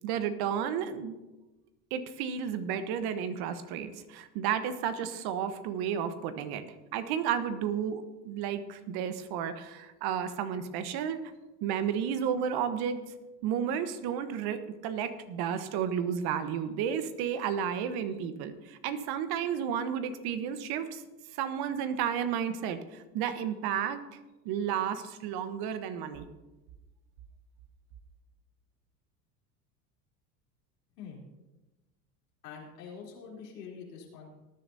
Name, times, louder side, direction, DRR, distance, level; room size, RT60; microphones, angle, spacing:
voice 1, 0.0-1.2 1.9-6.6 6.9-11.2 11.6-13.0 13.4-21.0 21.3-24.0 24.4-26.3, right 8 dB, 55° right, 10 dB, 1.2 m, -32 dB
voice 2, 32.4-34.3, left 6 dB, 80° left, -2 dB, 3.7 m, -45 dB
19.0 x 10.5 x 2.8 m, 1.1 s
hypercardioid pair, 85°, 47 cm